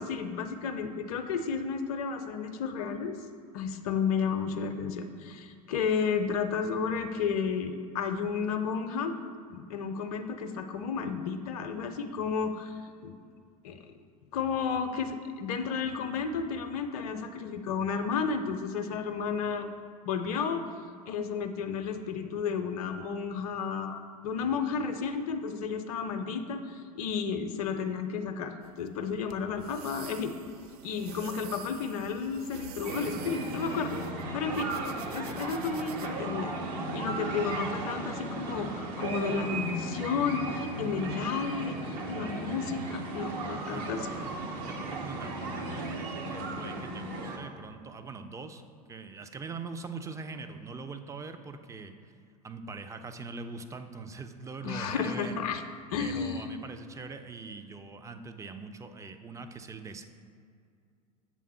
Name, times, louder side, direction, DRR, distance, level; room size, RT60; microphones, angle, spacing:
voice 1, 0.0-3.2 3.5-9.1 9.5-12.7 13.0-13.1 13.6-13.8 14.3-19.7 20.0-20.6 21.1-30.3 30.8-34.0 34.3-36.5 36.9-41.8 42.1-44.1 54.6-55.6 55.9-56.6, left 6 dB, 65° left, 7 dB, 0.5 m, -32 dB
sound 1, 28.6-36.1, right 8 dB, 70° right, 0.4 m, -48 dB
sound 2, 32.8-47.4, right 2 dB, 50° right, 0.9 m, -36 dB
voice 2, 43.7-48.6 48.9-51.9 52.4-55.3 56.0-60.0, right 4 dB, 15° right, 7 dB, 0.5 m, -42 dB
7.4 x 3.6 x 5.5 m, 2.3 s
figure-of-eight pair, 75°, 20 cm